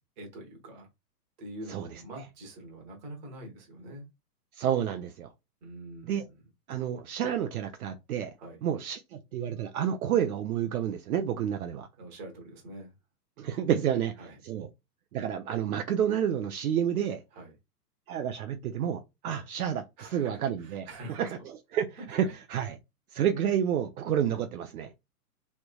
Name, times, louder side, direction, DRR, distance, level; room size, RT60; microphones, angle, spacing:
voice 1, 0.2-0.9 1.4-4.1 5.6-6.4 8.4-8.6 12.0-12.9 13.9-14.4 17.3-17.5 19.2-19.4 20.0-21.3 22.0-22.3, right 1 dB, 30° right, 1.1 m, -45 dB
voice 2, 4.5-5.3 6.1-6.3 6.7-8.3 8.6-11.9 13.4-14.1 14.4-14.7 15.1-17.2 18.1-21.4 21.7-22.8 23.1-24.9, right 9 dB, 65° right, 0.6 m, -29 dB
3.2 x 3.0 x 2.2 m
hypercardioid pair, 160°, 48 cm